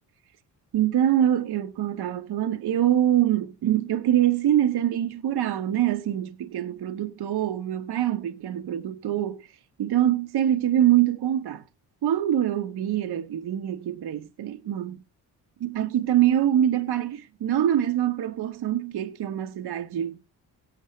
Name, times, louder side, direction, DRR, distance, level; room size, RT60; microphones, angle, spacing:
voice 1, 0.7-9.5 9.8-11.6 12.0-15.0 15.6-20.2, right 11 dB, 60° right, 1.0 m, -24 dB
18.0 x 7.2 x 3.1 m
supercardioid pair, 60°, 44 cm